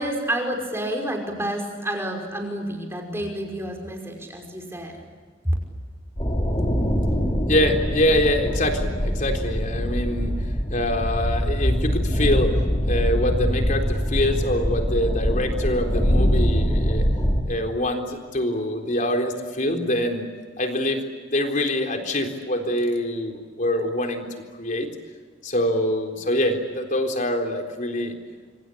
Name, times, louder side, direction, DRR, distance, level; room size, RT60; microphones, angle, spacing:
voice 1, 0.0-5.0 5.4-5.5, right 1 dB, 15° right, 2 dB, 5.5 m, -29 dB
sound 1, 6.2-17.4, equal, 25° left, 3.6 m, -23 dB
voice 2, 7.5-10.3 10.7-12.5 12.8-17.1 17.5-20.3 20.6-21.0 21.3-24.9 25.4-28.1, left 1 dB, 40° left, 4 dB, 3.9 m, -24 dB
26.0 x 26.0 x 8.7 m, 1.5 s
head